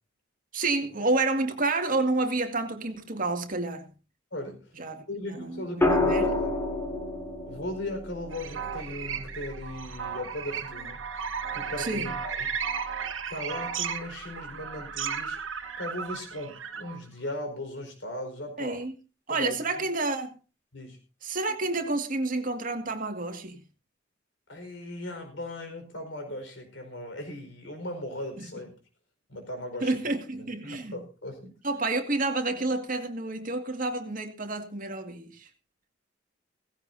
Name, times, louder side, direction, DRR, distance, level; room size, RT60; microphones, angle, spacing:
voice 1, 0.5-3.9 4.8-5.0 5.3-6.3 11.8-12.1 18.6-19.0 19.3-20.3 21.2-23.6 28.4-28.5 29.8-31.0 31.6-35.5, right 3 dB, 45° right, 2.1 m, -29 dB
voice 2, 4.3-4.7 5.1-6.5 7.5-11.0 11.5-12.4 13.3-15.4 15.8-18.8 19.3-19.8 20.7-21.0 24.5-28.8 29.3-30.0 30.4-31.5, left 1 dB, 70° left, 4.8 m, -38 dB
sound 1, 5.8-9.9 11.6-12.0, left 2 dB, 15° left, 2.4 m, -29 dB
sound 2, 8.3-17.0, right 7 dB, 85° right, 1.4 m, -35 dB
17.0 x 16.0 x 2.7 m
head